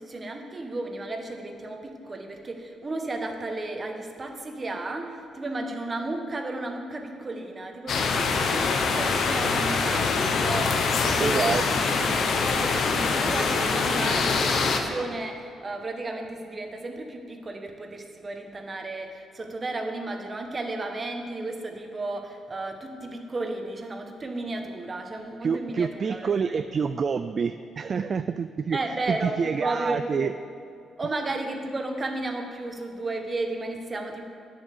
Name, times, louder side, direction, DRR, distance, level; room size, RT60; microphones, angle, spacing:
voice 1, 0.0-26.6 28.7-30.3 31.0-34.3, right 2 dB, 30° right, 4 dB, 1.3 m, -34 dB
sound 1, 7.9-14.8, left 4 dB, 65° left, 1.0 m, -24 dB
voice 2, 11.2-11.6 25.4-28.8 29.1-30.3, right 6 dB, 45° right, 11 dB, 0.3 m, -27 dB
8.9 x 7.3 x 6.7 m, 2.5 s
cardioid pair, 90°, 0 cm